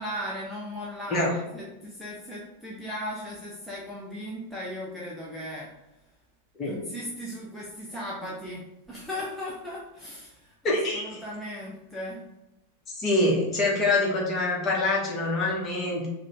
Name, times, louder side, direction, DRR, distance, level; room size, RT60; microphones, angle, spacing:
voice 1, 0.0-5.7 6.6-12.2, equal, ahead, -6 dB, 0.8 m, -37 dB
voice 2, 10.6-11.0 13.0-16.1, left 2 dB, 25° left, -3 dB, 1.4 m, -25 dB
5.2 x 2.6 x 3.4 m, 0.97 s
figure-of-eight pair, 90°, 0 cm